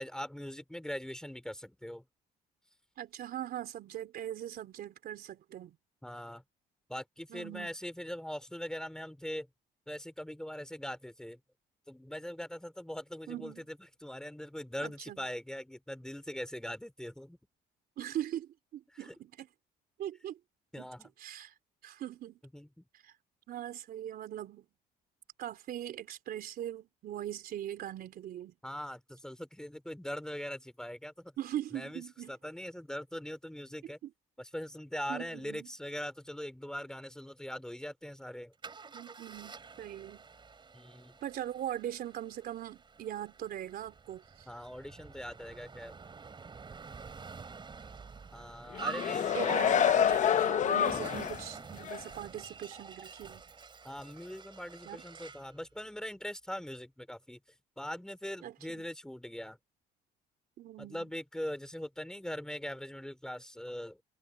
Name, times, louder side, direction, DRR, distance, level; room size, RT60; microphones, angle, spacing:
voice 1, 0.0-2.0 6.0-6.4 6.9-9.5 9.9-11.4 11.9-13.8 14.0-17.4 18.9-19.1 20.7-21.1 22.5-22.7 28.6-31.3 31.7-32.0 32.3-34.0 34.4-38.5 40.7-41.1 44.5-45.9 48.3-49.6 53.8-57.4 57.8-59.6 60.8-64.0, equal, 5° left, 3.1 m, -41 dB
voice 2, 3.0-5.8 7.3-7.7 13.3-13.7 14.8-15.2 18.0-19.5 20.0-20.4 20.8-20.9 21.2-21.5 21.8-22.4 23.0-23.1 23.5-24.7 25.4-28.6 31.4-32.3 34.0-34.1 35.1-35.7 38.9-40.3 41.2-44.5 49.3-53.4 54.8-55.0 58.4-58.9 60.6-61.1, right 11 dB, 60° right, 3.6 m, -41 dB
Car, 38.6-55.5, right 5 dB, 30° right, 4.0 m, -47 dB
sound 1, 48.7-51.5 51.9-52.0, left 9 dB, 45° left, 0.8 m, -27 dB
cardioid pair, 110°, 17 cm